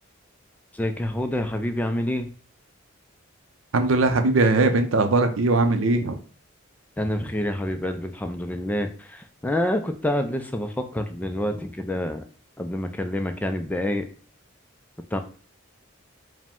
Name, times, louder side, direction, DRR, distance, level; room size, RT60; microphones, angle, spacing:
voice 1, 0.7-2.3 7.0-12.2 12.6-14.1 15.1-15.2, left 1 dB, 10° left, 7 dB, 0.3 m, -27 dB
voice 2, 3.7-6.2, right 2 dB, 70° right, 7 dB, 0.5 m, -20 dB
4.8 x 2.1 x 3.5 m, 0.41 s
head